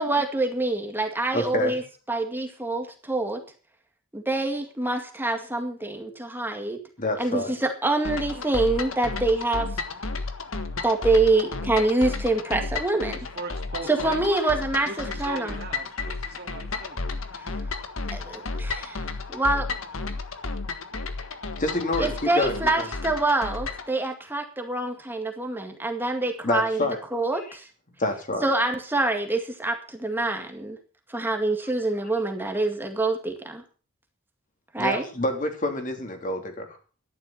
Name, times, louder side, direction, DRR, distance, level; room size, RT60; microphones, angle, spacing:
voice 1, 0.0-1.8 2.1-3.4 4.1-6.8 7.2-9.8 10.8-13.2 13.9-15.6 17.3-17.5 18.1-19.7 22.0-27.7 28.4-30.8 31.1-33.6 34.7-35.0, right 2 dB, 10° right, 4 dB, 2.1 m, -26 dB
voice 2, 1.3-1.8 7.0-7.5 21.6-22.9 26.4-27.0 28.0-28.4 34.8-36.7, left 1 dB, 40° left, 4 dB, 3.1 m, -27 dB
sound 1, 8.0-23.9, left 3 dB, 75° left, 1.6 m, -33 dB
voice 3, 13.3-14.3 14.9-17.0 23.1-23.2, right 2 dB, 50° right, 4 dB, 2.2 m, -38 dB
12.5 x 11.0 x 5.7 m, 0.36 s
head